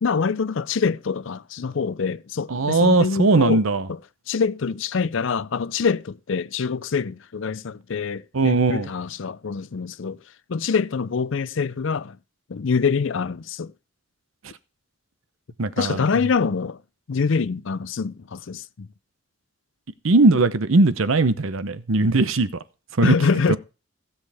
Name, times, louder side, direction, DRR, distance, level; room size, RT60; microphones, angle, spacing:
voice 1, 0.0-3.6 3.9-4.0 4.3-10.2 10.5-12.2 12.5-13.7 15.8-16.8 17.1-18.9 23.0-23.6, left 5 dB, 65° left, 0.5 m, -25 dB
voice 2, 2.5-3.9 8.3-8.9 15.6-16.0 20.0-22.5 23.0-23.2 23.5-23.6, right 3 dB, 75° right, 0.8 m, -19 dB
16.0 x 7.3 x 3.4 m
head